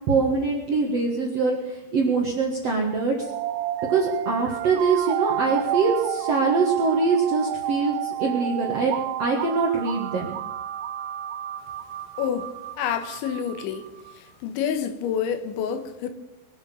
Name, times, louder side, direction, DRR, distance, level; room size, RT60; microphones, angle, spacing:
voice 1, 0.1-3.1 3.9-10.3, right 4 dB, 65° right, 0 dB, 1.5 m, -23 dB
sound 1, 3.2-14.1, right 14 dB, 90° right, 3.1 m, -31 dB
voice 2, 12.2-13.8 14.2-16.1, left 8 dB, 90° left, 9 dB, 3.5 m, -28 dB
22.0 x 8.2 x 7.0 m, 1.0 s
omnidirectional pair, 5.2 m